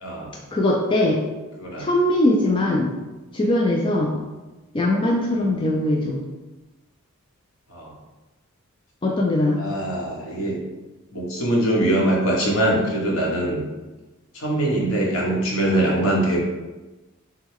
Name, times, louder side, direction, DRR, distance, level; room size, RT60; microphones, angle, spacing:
voice 1, 0.0-0.3 1.6-1.9 7.7-7.9 9.6-10.6 11.1-13.6 14.3-16.4, right 1 dB, 70° left, -2 dB, 1.1 m, -22 dB
voice 2, 0.5-1.2 1.8-2.9 3.3-4.1 4.7-6.2 9.0-9.6, left 1 dB, 25° left, -1 dB, 0.4 m, -20 dB
6.0 x 2.2 x 3.6 m, 1.1 s
head